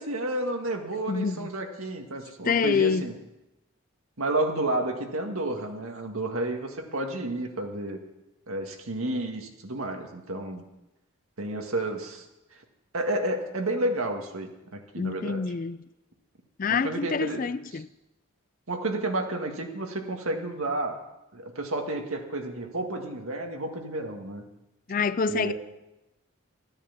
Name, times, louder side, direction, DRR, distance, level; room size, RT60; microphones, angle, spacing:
voice 1, 0.0-3.2 4.2-8.0 8.5-10.6 11.4-12.3 12.5-12.6 12.9-15.4 16.7-17.4 17.7-17.8 18.7-21.0 21.3-24.4 25.3-25.5, right 1 dB, 85° right, 2.0 m, -31 dB
voice 2, 1.1-1.5 2.5-3.1 15.0-15.8 16.6-17.9 24.9-25.5, left 5 dB, 40° left, 0.4 m, -26 dB
14.0 x 10.0 x 7.3 m
head